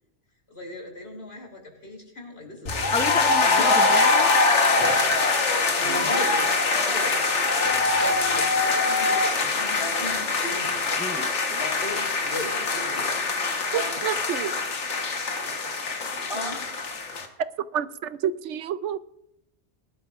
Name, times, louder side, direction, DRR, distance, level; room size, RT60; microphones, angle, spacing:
voice 1, 0.5-3.3 4.7-4.8 5.8-11.1 11.6-13.2 16.3-16.6, left 1 dB, 60° left, 3.3 m, -38 dB
sound 1, 2.7-17.3, left 3 dB, 85° left, 1.6 m, -23 dB
voice 2, 2.9-4.3 5.8-6.1 11.0-11.3, left 4 dB, 5° left, 0.6 m, -30 dB
sound 2, 3.6-4.2 4.6-5.7 6.7-7.6 8.8-9.3 9.8-10.3 11.6-12.5 13.8-14.7 16.3-17.1, left 1 dB, 25° left, 3.5 m, -40 dB
voice 3, 13.7-14.6 17.7-19.0, right 9 dB, 90° right, 1.0 m, -29 dB
20.5 x 11.5 x 2.5 m
omnidirectional pair, 1.2 m